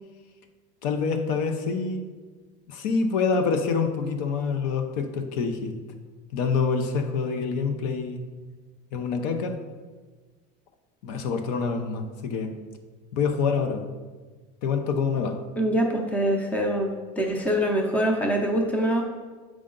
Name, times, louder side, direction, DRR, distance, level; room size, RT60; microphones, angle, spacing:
voice 1, 0.8-2.1 2.7-5.7 6.3-8.2 8.9-9.6 11.0-12.5 13.1-13.9 14.6-15.4, left 5 dB, 75° left, 7 dB, 0.8 m, -26 dB
voice 2, 15.6-16.9 17.2-19.0, equal, 5° left, 2 dB, 0.6 m, -24 dB
7.6 x 4.9 x 3.8 m, 1.4 s
cardioid pair, 160°, 21 cm